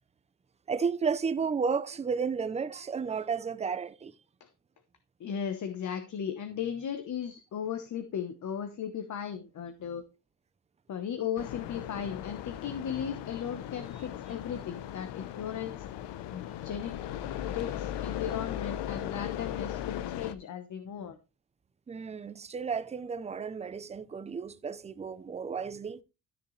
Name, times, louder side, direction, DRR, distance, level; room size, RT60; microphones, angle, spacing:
voice 1, 0.7-4.2 21.9-26.0, right 5 dB, 15° right, 0.5 m, -32 dB
voice 2, 5.2-10.0 10.9-15.9 16.3-17.0 17.5-21.2, left 8 dB, 45° left, 1.0 m, -36 dB
sound 1, 11.4-20.3, left 11 dB, 75° left, 0.9 m, -38 dB
13.0 x 6.7 x 3.2 m
cardioid pair, 150°, 41 cm